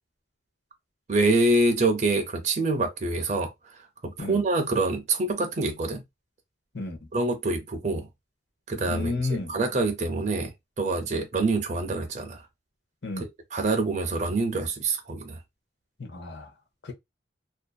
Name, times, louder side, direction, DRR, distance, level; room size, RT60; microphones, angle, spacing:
voice 1, 1.1-6.0 7.1-8.1 8.7-12.5 13.2-15.4, right 2 dB, 40° right, 0.5 m, -26 dB
voice 2, 8.9-9.5 13.0-13.3 16.0-16.5 16.8-16.9, left 3 dB, 65° left, 0.7 m, -32 dB
2.6 x 2.3 x 2.2 m
head